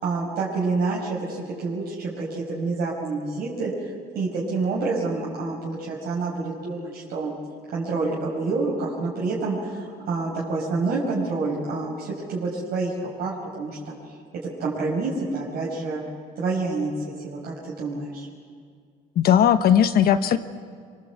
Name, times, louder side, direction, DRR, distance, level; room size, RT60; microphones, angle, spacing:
voice 1, 0.0-3.7 4.2-7.3 7.7-12.9 13.2-13.9 14.6-16.0 16.4-16.9 17.2-18.3, right 3 dB, 65° right, -5 dB, 5.3 m, -27 dB
voice 2, 19.2-20.4, left 9 dB, 65° left, 10 dB, 1.1 m, -18 dB
24.0 x 23.5 x 8.1 m, 2.1 s
cardioid pair, 110°, 17 cm